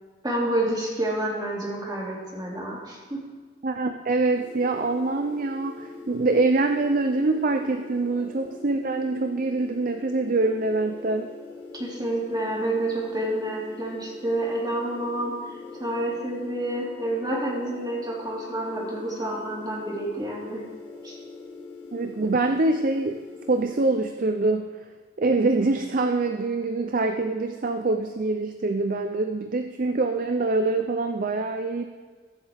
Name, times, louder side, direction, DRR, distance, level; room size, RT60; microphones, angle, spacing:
voice 1, 0.2-3.2 11.8-15.3 15.8-20.6 21.0-21.1, right 1 dB, 20° right, -3 dB, 2.6 m, -29 dB
voice 2, 3.6-11.3 21.9-23.2 23.5-24.9 25.2-31.9, right 3 dB, 45° right, 6 dB, 0.5 m, -25 dB
sound 1, 4.3-24.0, left 4 dB, 10° left, 2.9 m, -42 dB
21.5 x 8.0 x 3.5 m, 1.5 s
head